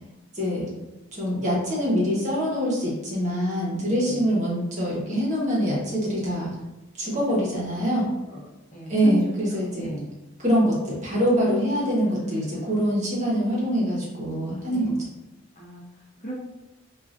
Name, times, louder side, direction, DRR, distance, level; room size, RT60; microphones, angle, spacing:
voice 1, 0.3-0.7 1.1-6.5 7.0-8.1 8.9-9.9 10.4-14.9, equal, 35° right, -5 dB, 1.0 m, -24 dB
voice 2, 3.9-4.3 7.0-7.2 8.2-9.2 9.5-10.1 12.0-12.6 14.7-15.0 15.6-16.3, right 3 dB, 35° left, -5 dB, 0.7 m, -37 dB
4.7 x 2.4 x 2.5 m, 0.99 s
head